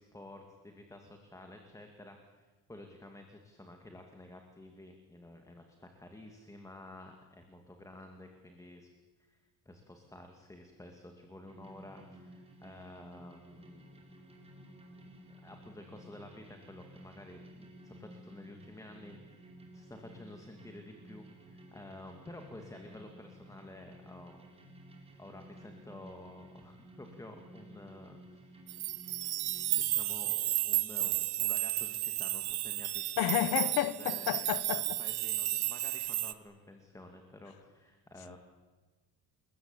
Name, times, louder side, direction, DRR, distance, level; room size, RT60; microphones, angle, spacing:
voice 1, 0.0-8.9 9.2-14.0 15.3-24.4 25.2-28.6 29.7-38.4, left 1 dB, 10° left, 2.3 m, -51 dB
sound 1, 11.5-29.9, right 1 dB, 15° right, 4.7 m, -54 dB
sound 2, 28.7-36.3, right 15 dB, 75° right, 1.4 m, -33 dB
voice 2, 33.2-35.0, left 13 dB, 65° left, 1.2 m, -31 dB
29.5 x 21.0 x 9.0 m
cardioid pair, 165°, 39 cm